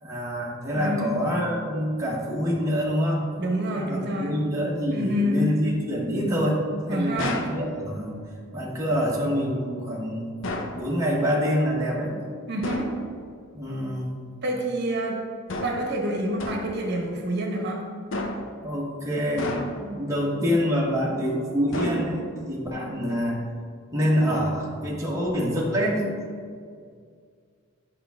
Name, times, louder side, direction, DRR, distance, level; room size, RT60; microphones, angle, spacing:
voice 1, 0.0-3.2 3.7-8.1 8.5-10.3 10.7-12.2 13.5-14.1 18.6-19.5 19.8-23.4 23.9-26.1, equal, 15° right, -4 dB, 1.1 m, -26 dB
voice 2, 0.7-1.3 3.4-4.5 4.9-5.5 6.9-7.4 12.5-12.9 14.4-15.2 15.6-17.9, equal, 55° right, 0 dB, 1.0 m, -27 dB
sound 1, 7.2-7.6 10.4-10.8 12.6-13.0 15.5-15.9 16.4-16.8 18.1-18.6 19.4-20.0 21.7-22.4, left 1 dB, 65° left, 0.7 m, -31 dB
8.6 x 5.6 x 3.5 m, 2.1 s
head